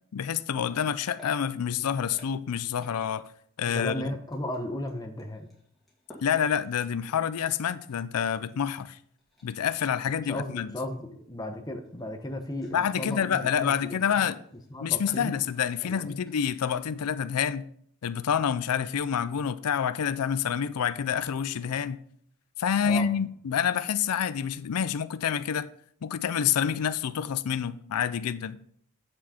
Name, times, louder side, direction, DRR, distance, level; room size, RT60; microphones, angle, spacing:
voice 1, 0.1-3.2 3.6-4.1 6.2-9.0 9.4-10.7 12.7-14.4 14.8-17.6 18.0-22.0 22.6-25.7 26.0-28.6, left 8 dB, 90° left, 0.4 m, -28 dB
sound 1, 0.7-3.4 3.7-3.8 4.3-8.2 8.5-8.9 9.2-10.0 10.4-17.0, left 1 dB, ahead, 2.4 m, -58 dB
voice 2, 3.7-5.5 10.3-14.3 14.7-15.4 15.8-16.2 22.8-23.1, left 1 dB, 15° left, 0.8 m, -35 dB
8.2 x 7.5 x 4.3 m
head